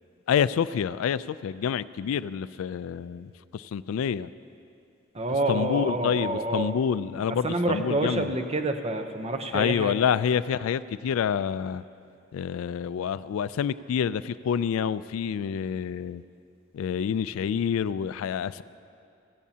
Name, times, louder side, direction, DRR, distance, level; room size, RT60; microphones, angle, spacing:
voice 1, 0.3-4.3 5.5-8.3 9.5-11.8 12.3-16.2 16.7-18.6, left 7 dB, 85° left, 17 dB, 0.3 m, -27 dB
voice 2, 5.1-6.7 7.4-10.0, right 2 dB, 30° right, 6 dB, 0.7 m, -28 dB
16.0 x 15.5 x 2.8 m, 2.6 s
head